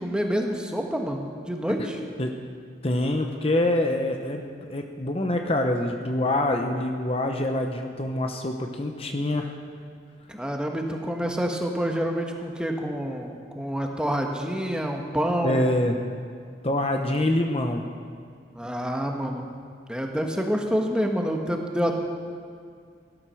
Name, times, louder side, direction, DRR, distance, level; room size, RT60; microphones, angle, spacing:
voice 1, 0.0-2.0 10.3-15.7 18.5-19.5 19.9-21.9, equal, 5° right, 2 dB, 1.2 m, -27 dB
voice 2, 2.8-9.5 15.4-16.0 16.6-17.8, left 1 dB, 30° left, 4 dB, 0.9 m, -25 dB
17.0 x 12.5 x 6.3 m, 2.1 s
head